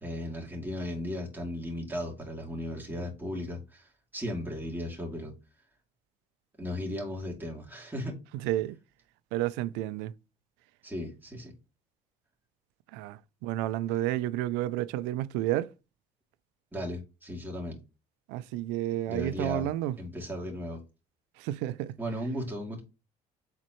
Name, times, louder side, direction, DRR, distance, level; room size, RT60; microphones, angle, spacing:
voice 1, 0.0-5.3 6.6-8.2 10.8-11.5 16.7-17.8 19.1-20.8 22.0-22.8, left 1 dB, 10° right, 2.6 m, -36 dB
voice 2, 8.3-8.8 9.3-10.1 12.9-15.7 18.3-19.9 21.4-22.0, right 14 dB, 85° right, 0.4 m, -31 dB
7.2 x 4.3 x 3.1 m
supercardioid pair, 90°, 18 cm